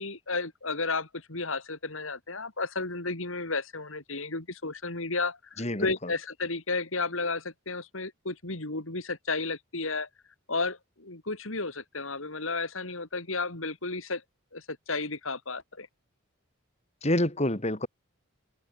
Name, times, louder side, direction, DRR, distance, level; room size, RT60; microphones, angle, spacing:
voice 1, 0.0-10.1 10.5-14.2 14.5-15.9, left 3 dB, 70° left, 3.5 m, -33 dB
voice 2, 5.6-5.9 17.0-17.9, left 1 dB, 30° left, 3.6 m, -27 dB
head